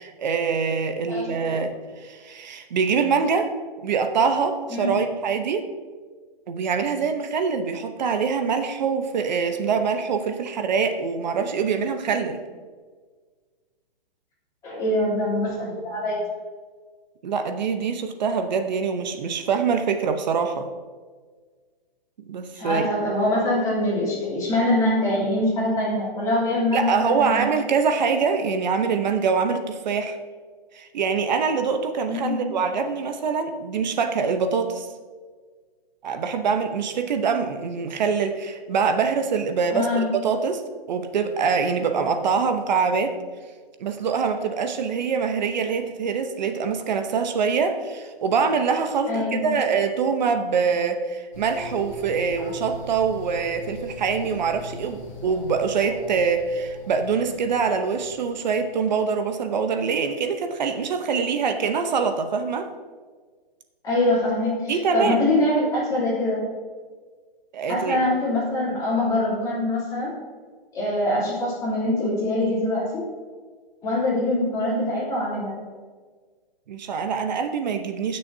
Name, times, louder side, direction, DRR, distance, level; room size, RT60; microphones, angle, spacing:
voice 1, 0.0-1.7 2.0-3.5 3.8-5.7 6.5-12.4 17.2-20.7 22.3-22.9 26.7-30.2 30.7-34.9 36.0-40.6 40.9-43.2 43.8-62.7 64.7-65.2 67.5-68.0 76.7-78.2, right 5 dB, 50° right, 7 dB, 0.8 m, -24 dB
voice 2, 14.6-16.2 22.5-27.5 32.1-32.5 39.7-40.2 49.1-49.5 63.8-66.4 67.7-70.1 70.7-73.0 73.8-75.6, left 1 dB, 10° left, -8 dB, 2.9 m, -24 dB
sound 1, 51.3-58.9, left 2 dB, 35° left, 2.3 m, -40 dB
16.0 x 6.5 x 2.7 m, 1.5 s
hypercardioid pair, 170°, 29 cm